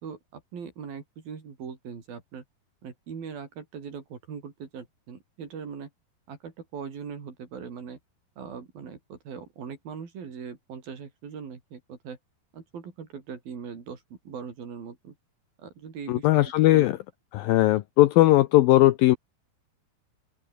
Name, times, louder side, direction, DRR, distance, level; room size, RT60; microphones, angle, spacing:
voice 1, 0.0-2.4 2.8-5.9 6.3-8.0 8.4-12.2 12.5-15.2 15.6-16.4 16.7-16.9, right 6 dB, 60° right, 5.6 m, -40 dB
voice 2, 16.1-17.0 17.3-19.2, left 16 dB, 75° left, 2.2 m, -19 dB
omnidirectional pair, 4.9 m